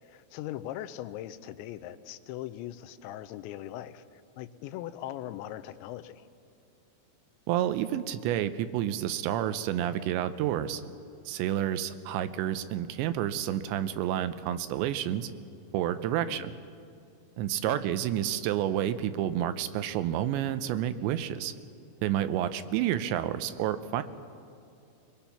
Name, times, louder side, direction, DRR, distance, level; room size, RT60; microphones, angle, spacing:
voice 1, 0.0-6.3 16.3-16.5 17.7-17.8, left 13 dB, 90° left, 11 dB, 3.0 m, -40 dB
voice 2, 7.5-10.8 11.3-15.3 15.7-16.5 17.4-21.5 22.0-24.0, right 11 dB, 90° right, 11 dB, 3.0 m, -29 dB
23.5 x 22.0 x 5.8 m, 2.6 s
omnidirectional pair, 5.1 m